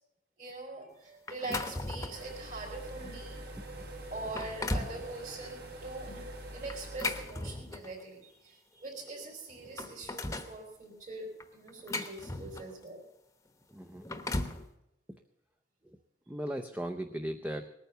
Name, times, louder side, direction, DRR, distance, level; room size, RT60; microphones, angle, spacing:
voice 1, 0.4-3.5 3.8-3.9 4.1-13.0, right 2 dB, 45° right, -5 dB, 3.8 m, -43 dB
sound 1, 1.3-2.3 2.9-3.1 3.7-3.8 4.2-5.0 6.7-8.0 9.1-9.2 9.5-10.6 11.4-12.8 13.8-14.6, left 2 dB, 15° left, 1.0 m, -37 dB
sound 2, 2.1-7.3, right 1 dB, 60° right, 3.7 m, -44 dB
voice 2, 13.7-14.2 16.3-17.7, right 1 dB, 10° right, 5 dB, 0.7 m, -37 dB
19.5 x 9.3 x 6.7 m, 0.86 s
head